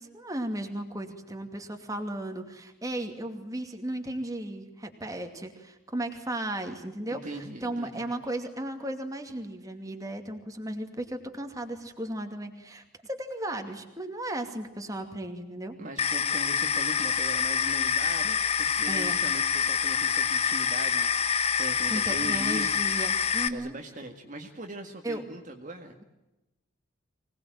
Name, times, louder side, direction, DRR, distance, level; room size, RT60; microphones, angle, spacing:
voice 1, 0.0-15.8 18.9-19.2 21.9-23.7 25.0-25.2, right 1 dB, 15° right, 5 dB, 2.5 m, -35 dB
voice 2, 7.1-8.1 15.8-22.7 23.5-26.0, right 1 dB, 35° right, 3 dB, 2.0 m, -40 dB
sound 1, 16.0-23.5, left 7 dB, 30° left, 1.1 m, -26 dB
25.0 x 19.5 x 9.1 m, 0.99 s
head